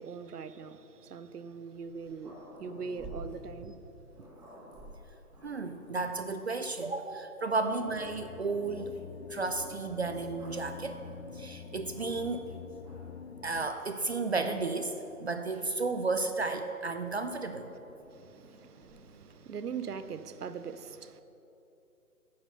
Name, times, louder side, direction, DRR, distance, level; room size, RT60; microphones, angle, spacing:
voice 1, 0.0-3.8 18.1-21.2, right 6 dB, 85° right, 0.7 m, -41 dB
Growling, 1.7-6.3 7.0-7.1 7.5-8.5 9.6-12.4 12.8-13.3 14.2-16.0 17.1-19.7, right 1 dB, 10° right, 1.4 m, -53 dB
voice 2, 5.4-8.9 9.3-11.0 11.3-12.5 13.4-17.7, right 3 dB, 50° right, 0.4 m, -33 dB
sound 1, 7.8-13.7, left 6 dB, 55° left, 0.6 m, -46 dB
9.3 x 5.8 x 6.5 m
figure-of-eight pair, 150°, 45 cm